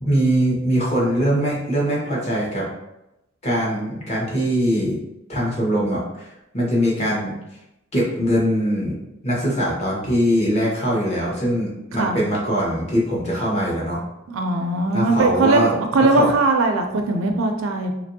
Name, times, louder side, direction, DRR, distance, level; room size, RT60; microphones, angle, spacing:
voice 1, 0.0-2.7 3.4-5.0 5.3-7.3 7.9-9.0 9.2-14.0 14.9-15.8 16.1-16.3, equal, 35° left, -4 dB, 0.9 m, -22 dB
voice 2, 14.3-15.6 15.9-17.9, right 3 dB, 75° right, 4 dB, 0.4 m, -19 dB
2.9 x 2.5 x 2.6 m, 0.91 s
head